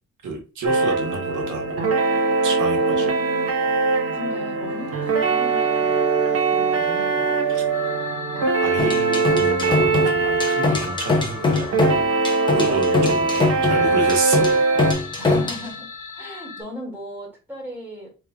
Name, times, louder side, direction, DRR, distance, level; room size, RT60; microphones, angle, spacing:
voice 1, 0.2-1.8 2.4-3.1 7.5-7.6 8.6-11.7 12.6-14.4, right 3 dB, 85° right, 2 dB, 1.2 m, -29 dB
sound 1, 0.6-14.9, right 4 dB, 55° right, 0.8 m, -21 dB
voice 2, 2.7-3.6 4.1-7.4 12.5-13.4 13.8-14.2 15.2-18.1, equal, 5° right, -3 dB, 1.9 m, -38 dB
sound 2, 4.6-16.6, left 4 dB, 80° left, 1.0 m, -37 dB
sound 3, 8.8-15.7, left 3 dB, 15° left, 0.6 m, -23 dB
4.9 x 3.1 x 2.2 m, 0.34 s
wide cardioid pair, 165°, 30 cm